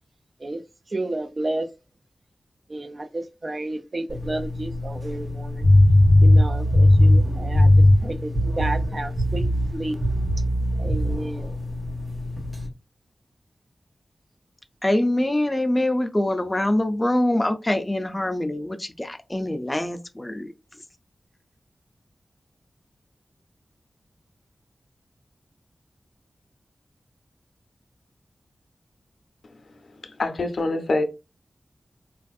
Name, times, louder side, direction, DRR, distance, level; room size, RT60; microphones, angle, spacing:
voice 1, 0.9-1.7 2.7-5.6 6.2-7.7 8.0-10.0 10.8-11.5, right 2 dB, 45° right, 0.4 m, -31 dB
sound 1, 4.1-12.7, left 2 dB, 60° right, 1.2 m, -33 dB
sound 2, 5.6-8.0 8.3-8.9 9.2-9.7 10.0-11.2, left 1 dB, 10° right, 0.7 m, -17 dB
voice 2, 14.8-20.5, left 1 dB, 20° left, 0.4 m, -24 dB
voice 3, 29.7-31.0, left 2 dB, 75° left, 0.5 m, -26 dB
3.3 x 2.5 x 2.3 m
wide cardioid pair, 100°, 0 cm